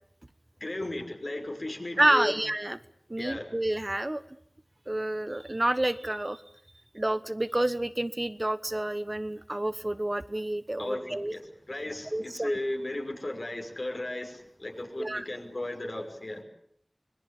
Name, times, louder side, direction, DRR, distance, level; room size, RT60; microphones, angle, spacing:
voice 1, 0.6-2.4 3.2-3.5 10.8-16.4, left 1 dB, 70° left, 3 dB, 5.7 m, -35 dB
voice 2, 2.0-2.8 3.1-4.2 4.9-6.4 6.9-11.3 12.1-12.6 15.0-15.2, right 1 dB, 35° right, 13 dB, 1.2 m, -29 dB
25.5 x 21.0 x 8.4 m, 0.68 s
wide cardioid pair, 45°, 0 cm